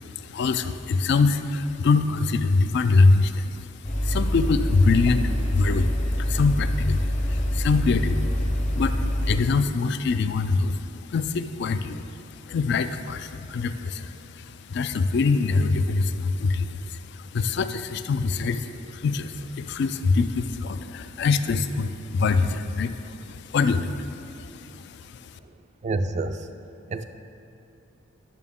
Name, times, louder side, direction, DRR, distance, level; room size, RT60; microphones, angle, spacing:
voice 1, 0.0-25.3, left 4 dB, 55° left, 11 dB, 0.3 m, -24 dB
sound 1, 3.8-9.4, equal, 35° left, 0.9 m, -25 dB
voice 2, 25.8-26.5 26.9-27.0, right 2 dB, 35° right, 9 dB, 0.3 m, -27 dB
11.0 x 6.8 x 3.6 m, 2.6 s
head